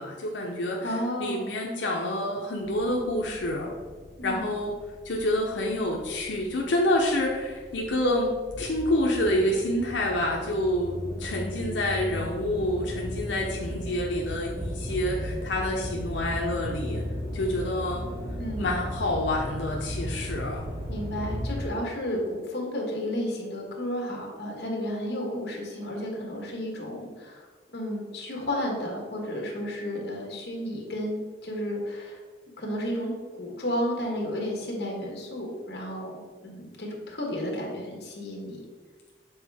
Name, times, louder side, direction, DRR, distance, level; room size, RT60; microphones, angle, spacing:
voice 1, 0.0-3.7 4.2-4.7 5.0-8.3 8.6-17.0 17.3-18.0 18.6-20.7, left 1 dB, 85° left, -1 dB, 0.7 m, -28 dB
voice 2, 0.8-1.5 4.2-4.5 18.4-18.7 20.9-27.5 27.7-32.2 32.6-33.1 33.4-38.6, equal, 60° left, -1 dB, 1.4 m, -32 dB
sound 1, 2.6-21.6, equal, 65° right, 1.5 m, -36 dB
7.1 x 4.1 x 3.5 m, 1.5 s
head